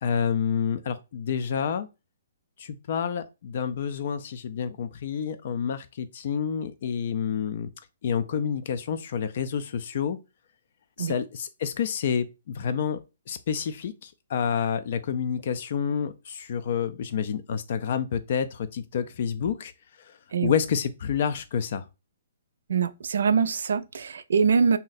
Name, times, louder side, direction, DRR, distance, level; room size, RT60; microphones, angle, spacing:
voice 1, 0.0-1.9 2.6-7.7 8.0-10.2 11.0-13.0 13.3-19.7 20.0-21.8, left 7 dB, 45° left, 0.3 m, -29 dB
voice 2, 22.7-24.8, right 6 dB, 75° right, 0.3 m, -23 dB
2.6 x 2.1 x 3.9 m
hypercardioid pair, 170°, 0 cm